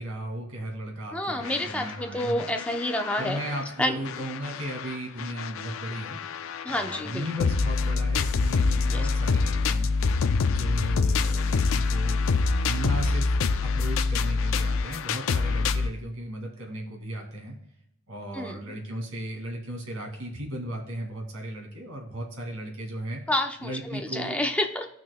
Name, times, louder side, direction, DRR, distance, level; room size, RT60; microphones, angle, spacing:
voice 1, 0.0-2.4 3.2-6.2 6.6-9.9 10.4-12.2 12.7-13.3 13.6-17.5 18.1-23.2 23.6-24.4, right 1 dB, 90° right, 1 dB, 2.3 m, -36 dB
voice 2, 1.1-3.4 3.8-4.0 6.6-7.3 8.9-9.1 18.3-18.8 23.3-24.9, left 1 dB, 5° left, 4 dB, 0.7 m, -29 dB
sound 1, 1.4-3.6 4.0-15.9, left 4 dB, 65° left, 0.4 m, -26 dB
18.0 x 6.0 x 2.2 m, 0.76 s
head